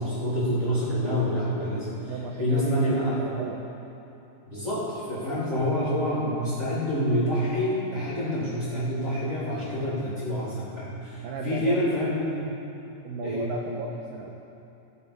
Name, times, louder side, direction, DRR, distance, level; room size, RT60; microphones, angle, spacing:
voice 1, 0.0-2.1 2.4-3.3 4.5-12.5 13.2-13.5, equal, 20° right, -11 dB, 2.9 m, -27 dB
voice 2, 2.0-3.6 11.2-11.8 12.9-14.3, right 3 dB, 90° right, 1 dB, 1.9 m, -35 dB
16.0 x 7.0 x 5.2 m, 2.9 s
omnidirectional pair, 4.9 m